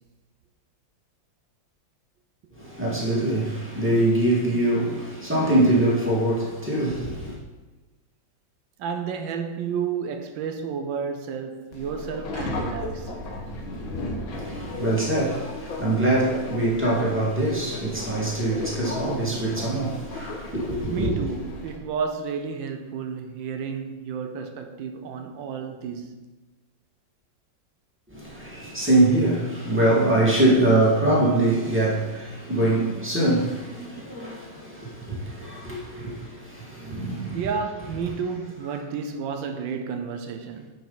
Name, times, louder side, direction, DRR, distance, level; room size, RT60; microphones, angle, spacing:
voice 1, 2.5-7.4 14.3-21.1 28.1-37.4 38.0-38.1, right 1 dB, 5° right, 1.8 m, -23 dB
voice 2, 8.8-13.1 20.9-26.3 37.3-40.7, right 6 dB, 80° right, 1.4 m, -31 dB
Subway metro underground, 11.7-21.8, left 2 dB, 85° left, 1.9 m, -35 dB
9.4 x 5.3 x 4.0 m
omnidirectional pair, 2.1 m